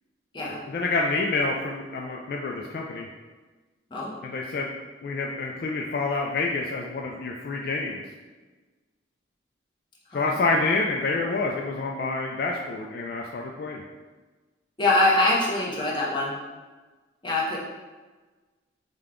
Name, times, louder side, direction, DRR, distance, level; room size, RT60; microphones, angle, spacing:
voice 1, 0.7-3.1 4.2-4.7 5.0-8.0 10.1-13.8, left 3 dB, 55° left, 0 dB, 0.3 m, -27 dB
voice 2, 14.8-16.3 17.2-17.6, left 2 dB, 25° left, -5 dB, 0.8 m, -23 dB
5.1 x 2.2 x 3.6 m, 1.3 s
head